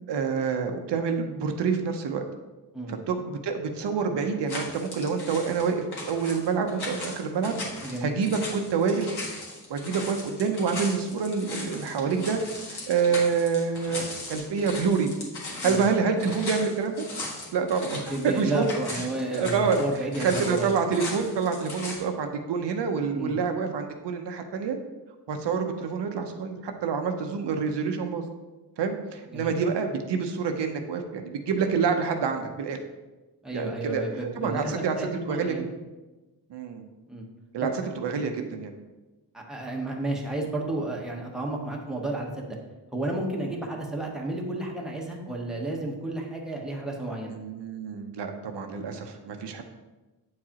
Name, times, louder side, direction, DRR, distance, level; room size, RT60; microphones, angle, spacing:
voice 1, 0.1-2.2 2.9-7.6 7.8-9.1 9.7-12.4 12.7-15.1 15.6-17.0 17.5-24.8 25.3-28.2 28.8-32.8 33.5-34.0 34.4-35.5 36.5-36.9 37.5-38.7 43.4-43.5 47.3-49.6, right 5 dB, 75° right, 4 dB, 0.7 m, -27 dB
sound 1, 4.5-22.0, left 2 dB, 65° left, 1.7 m, -38 dB
voice 2, 7.8-8.1 15.6-15.8 17.9-20.7 23.1-23.4 29.3-29.5 33.4-35.6 37.1-37.2 37.6-37.7 39.3-42.6 42.9-47.4, right 2 dB, ahead, -2 dB, 1.0 m, -32 dB
8.3 x 4.7 x 2.9 m, 1.1 s
wide cardioid pair, 120°, 42 cm